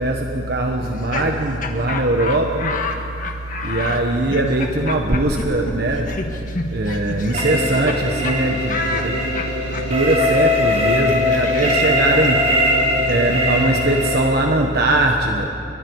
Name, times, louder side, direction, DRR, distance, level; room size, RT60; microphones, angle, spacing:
voice 1, 0.0-2.8 3.6-6.2 6.7-9.3 9.7-12.7 13.1-15.5, right 1 dB, 60° right, 2 dB, 1.4 m, -20 dB
Laughter, 0.8-8.0 8.2-8.4 8.7-14.4, left 3 dB, 45° left, 1.7 m, -30 dB
sound 1, 7.3-14.2, left 1 dB, 40° right, 6.6 m, -20 dB
29.0 x 23.5 x 4.9 m, 2.6 s
head